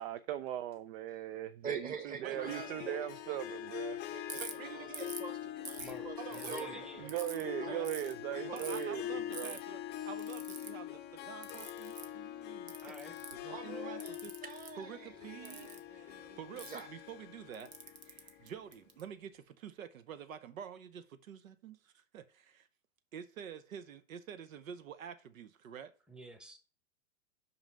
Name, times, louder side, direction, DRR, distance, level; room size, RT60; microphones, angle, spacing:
voice 1, 0.0-4.0 7.0-9.6, right 13 dB, 45° right, 0.5 m, -39 dB
voice 2, 1.6-3.6 4.1-4.9 5.2-6.8 7.5-7.8 8.3-8.8 13.5-16.9 18.1-18.4, right 6 dB, 20° right, 1.3 m, -46 dB
voice 3, 2.2-3.0 4.3-5.1 6.2-7.9 8.5-12.7 13.3-14.3 14.8-17.7 18.0-22.7 23.1-25.9, right 8 dB, 70° right, 0.9 m, -48 dB
Harp, 2.3-18.8, left 11 dB, 25° left, 0.6 m, -44 dB
Ratchet pawl, 4.3-4.5 4.9-5.3 5.7-6.6 7.1-7.4 7.8-8.1 8.6-8.8 9.3-9.6 10.2-10.7 11.4-12.1 12.7-13.5 14.0-14.7 15.4-15.8 16.6-16.8 17.5-19.0, right 4 dB, 85° right, 1.3 m, -45 dB
voice 4, 5.8-7.1 12.8-13.2 26.1-26.6, right 1 dB, ahead, 1.0 m, -50 dB
5.7 x 5.5 x 5.6 m
hypercardioid pair, 105°, 42 cm